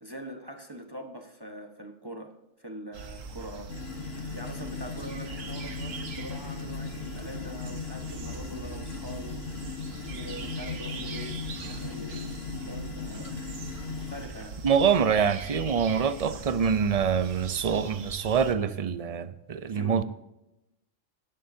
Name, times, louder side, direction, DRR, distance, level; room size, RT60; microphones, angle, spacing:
voice 1, 0.0-2.3 2.6-3.7 4.0-9.4 10.0-12.3 12.6-13.4 14.0-14.6 19.7-20.0, equal, 20° right, 3 dB, 1.2 m, -43 dB
sound 1, 2.9-18.5, right 4 dB, 75° right, 1.5 m, -41 dB
sound 2, 3.7-14.3, left 5 dB, 50° left, 1.2 m, -38 dB
voice 2, 14.6-20.0, right 7 dB, 45° right, 13 dB, 0.4 m, -25 dB
17.0 x 11.5 x 2.7 m, 0.91 s
omnidirectional pair, 1.4 m